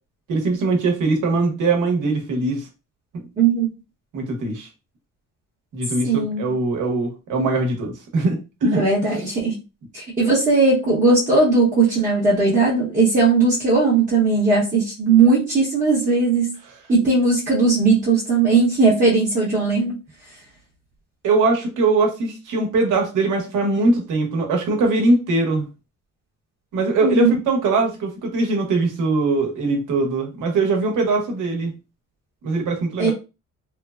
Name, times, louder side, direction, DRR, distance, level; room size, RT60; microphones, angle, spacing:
voice 1, 0.3-2.7 3.1-3.3 4.1-4.7 5.7-8.8 21.2-25.7 26.7-31.7 32.4-33.1, right 3 dB, 75° right, 3 dB, 0.9 m, -21 dB
voice 2, 3.4-3.7 6.0-6.5 8.7-9.6 9.9-16.6 16.9-20.0 27.0-27.3 33.0-33.1, right 3 dB, 25° right, -8 dB, 0.8 m, -18 dB
3.1 x 2.0 x 2.3 m, 0.28 s
cardioid pair, 165°, 32 cm